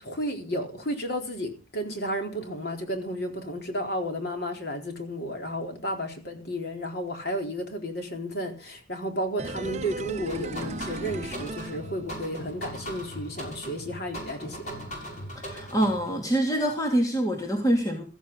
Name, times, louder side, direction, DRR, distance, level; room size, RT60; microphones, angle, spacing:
voice 1, 0.0-14.6, equal, 55° left, 4.0 m, -32 dB
sound 1, 9.4-12.5 12.8-12.9, right 2 dB, 35° right, 0.8 m, -37 dB
sound 2, 10.3-16.1, equal, 40° left, 6.6 m, -39 dB
voice 2, 15.3-18.0, right 1 dB, 20° left, 2.6 m, -25 dB
15.0 x 14.5 x 3.9 m
head